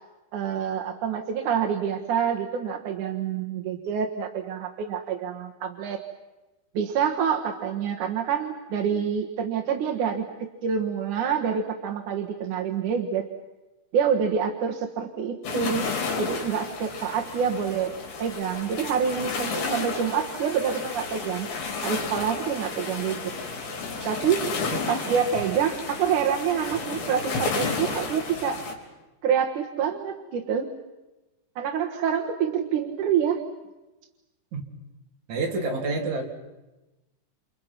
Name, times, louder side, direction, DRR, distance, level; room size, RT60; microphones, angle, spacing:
voice 1, 0.3-6.0 6.7-10.3 10.6-13.2 13.9-15.9 16.2-21.5 21.8-23.3 24.0-24.5 24.9-28.6 29.2-30.7 31.6-33.4, right 7 dB, 60° right, 3 dB, 2.2 m, -27 dB
sound 1, 15.4-28.7, left 4 dB, 70° left, 6.2 m, -32 dB
voice 2, 35.3-36.2, right 3 dB, 45° right, 1 dB, 4.0 m, -28 dB
29.0 x 28.5 x 6.0 m, 1.1 s
omnidirectional pair, 5.3 m